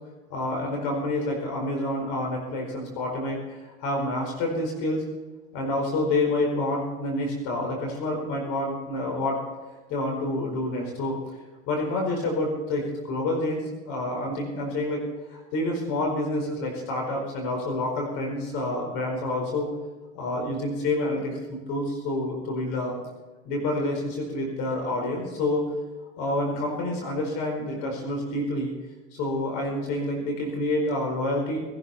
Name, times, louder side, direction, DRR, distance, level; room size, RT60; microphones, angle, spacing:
voice 1, 0.3-5.0 5.5-9.4 9.9-11.4 11.7-15.0 15.3-19.7 20.1-22.9 23.4-25.7 26.2-28.7 29.1-31.6, left 1 dB, 65° left, 1 dB, 4.7 m, -28 dB
19.5 x 12.0 x 4.3 m, 1.2 s
hypercardioid pair, 85°, 35 cm